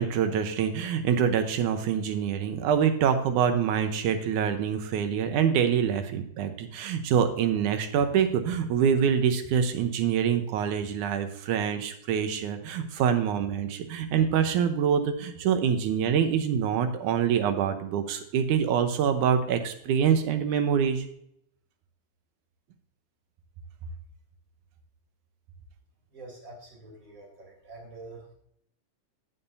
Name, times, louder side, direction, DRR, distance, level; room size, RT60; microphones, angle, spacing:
voice 1, 0.0-21.0, right 8 dB, 80° right, 8 dB, 2.3 m, -25 dB
voice 2, 26.1-28.3, right 2 dB, 25° right, -2 dB, 3.6 m, -46 dB
16.5 x 5.7 x 2.7 m, 0.71 s
omnidirectional pair, 3.6 m